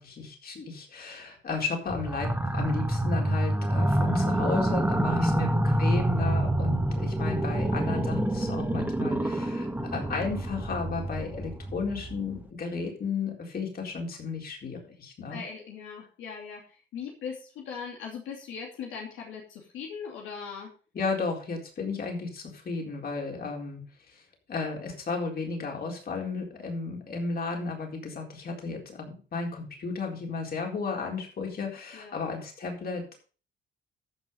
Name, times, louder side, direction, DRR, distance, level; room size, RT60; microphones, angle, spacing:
voice 1, 0.0-15.4 20.9-24.2 24.5-33.2, left 4 dB, 50° left, 1 dB, 4.1 m, -34 dB
sound 1, 1.9-12.4, right 1 dB, 10° right, 1.6 m, -27 dB
voice 2, 15.2-20.7 31.9-32.2, left 6 dB, 85° left, -1 dB, 2.7 m, -40 dB
14.0 x 5.9 x 5.5 m, 0.38 s
cardioid pair, 90°, 20 cm